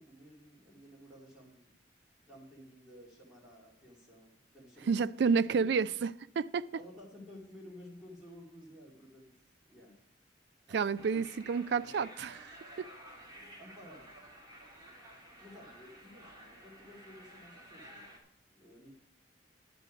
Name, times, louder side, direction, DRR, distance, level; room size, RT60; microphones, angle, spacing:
voice 1, 0.0-1.7 2.3-4.9 5.6-6.0 6.7-9.4 9.7-10.0 10.7-11.2 11.7-11.9 13.6-14.2 15.4-18.1 18.5-18.9, left 1 dB, 5° right, 2.1 m, -54 dB
voice 2, 4.9-6.7 10.7-12.9, right 5 dB, 65° right, 0.3 m, -30 dB
sound 1, 11.0-18.2, right 1 dB, 20° right, 2.6 m, -53 dB
10.5 x 9.1 x 5.0 m
head